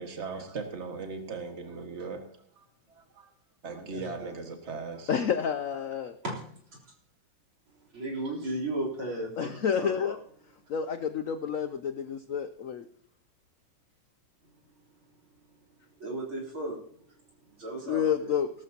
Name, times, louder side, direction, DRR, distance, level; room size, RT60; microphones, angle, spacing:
voice 1, 0.0-2.2 2.6-3.3 3.6-5.1, right 4 dB, 35° right, 4 dB, 2.0 m, -39 dB
voice 2, 3.9-4.5 6.2-6.3 7.9-9.5 9.8-10.2 16.0-16.8 17.6-18.4, right 1 dB, 85° right, -2 dB, 4.6 m, -35 dB
voice 3, 5.1-6.1 9.4-10.2 10.7-12.8 17.8-18.5, left 7 dB, 75° left, 9 dB, 0.7 m, -29 dB
18.0 x 13.0 x 2.9 m, 0.64 s
omnidirectional pair, 2.2 m